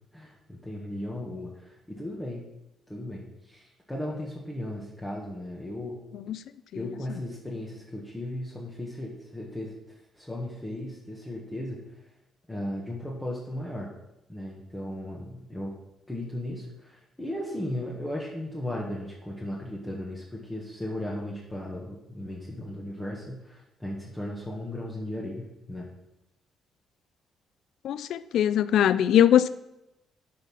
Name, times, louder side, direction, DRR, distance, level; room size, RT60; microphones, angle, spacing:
voice 1, 0.1-2.4 2.9-6.0 6.8-11.8 12.5-13.9 14.3-15.8 16.1-25.9, left 1 dB, 10° left, -4 dB, 1.7 m, -36 dB
voice 2, 27.8-29.5, left 10 dB, 75° left, 16 dB, 0.4 m, -21 dB
11.5 x 4.2 x 5.5 m, 0.90 s
cardioid pair, 90°, 0 cm